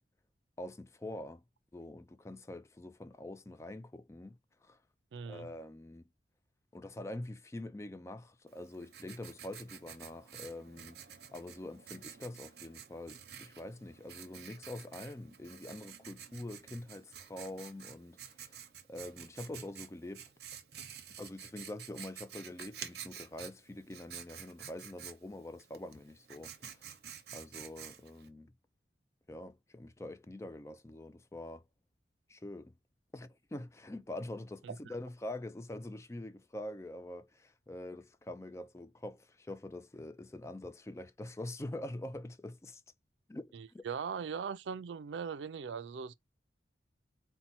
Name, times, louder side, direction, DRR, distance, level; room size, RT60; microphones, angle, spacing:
voice 1, 0.6-1.4 1.7-4.8 5.3-6.0 6.7-11.0 11.3-18.6 18.9-20.2 21.2-26.9 27.3-28.5 29.3-31.6 32.3-32.7 33.1-42.8 43.3-43.8, left 1 dB, 15° left, 0.3 m, -45 dB
voice 2, 5.1-5.5 34.6-34.8 43.5-46.1, right 6 dB, 80° right, 0.4 m, -40 dB
Writing, 8.5-28.3, right 8 dB, 60° right, 0.7 m, -50 dB
4.2 x 2.2 x 4.1 m
head